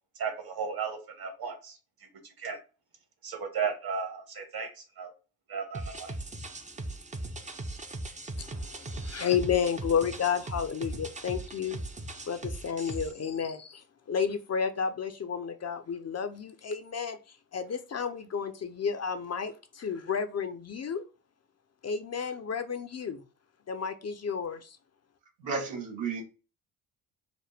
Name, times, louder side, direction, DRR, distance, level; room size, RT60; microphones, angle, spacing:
voice 1, 0.1-1.8 2.4-2.6 3.2-5.1 5.5-6.1, right 6 dB, 50° right, 1.5 m, -35 dB
sound 1, 5.7-13.1, right 2 dB, 15° right, 0.6 m, -39 dB
voice 2, 8.4-11.8 12.3-17.2 17.5-21.0 21.8-23.2 23.7-24.8, left 7 dB, 35° left, 0.6 m, -31 dB
voice 3, 25.4-26.2, right 5 dB, 80° right, 1.3 m, -33 dB
5.0 x 2.1 x 3.3 m
hypercardioid pair, 50°, 45 cm